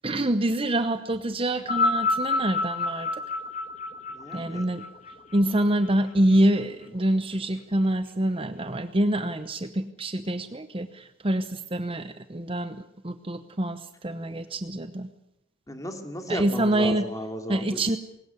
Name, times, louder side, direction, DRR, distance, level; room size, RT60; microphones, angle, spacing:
voice 1, 0.0-3.2 4.3-4.9 5.3-15.1 16.3-17.1 17.5-18.0, right 1 dB, 25° right, 10 dB, 0.9 m, -26 dB
sound 1, 1.6-6.1 7.0-7.1, left 3 dB, 35° left, 1.6 m, -28 dB
voice 2, 4.1-4.7 15.7-17.8, equal, 15° left, 5 dB, 2.6 m, -34 dB
21.0 x 18.5 x 8.3 m, 0.84 s
head